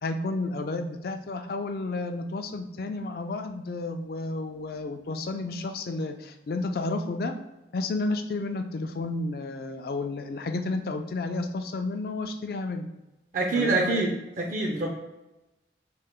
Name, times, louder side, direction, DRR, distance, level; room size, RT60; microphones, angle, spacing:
voice 1, 0.0-7.3 7.7-12.9 13.5-14.1, left 2 dB, 55° left, 6 dB, 0.4 m, -31 dB
voice 2, 13.3-14.9, right 3 dB, 45° right, 0 dB, 0.4 m, -26 dB
4.2 x 2.1 x 3.6 m, 0.99 s
head